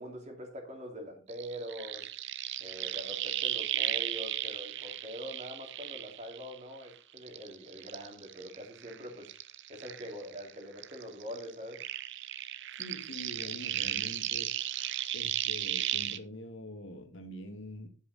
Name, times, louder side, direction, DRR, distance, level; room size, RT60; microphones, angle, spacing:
voice 1, 0.0-2.1 2.6-9.3 9.7-11.8, equal, 35° right, 2.6 m, -44 dB
sound 1, 1.3-6.8 7.2-10.5 10.8-16.2, right 13 dB, 60° right, 0.6 m, -35 dB
voice 2, 12.8-14.8 15.1-17.9, equal, 65° left, 1.8 m, -45 dB
9.5 x 7.4 x 4.0 m
head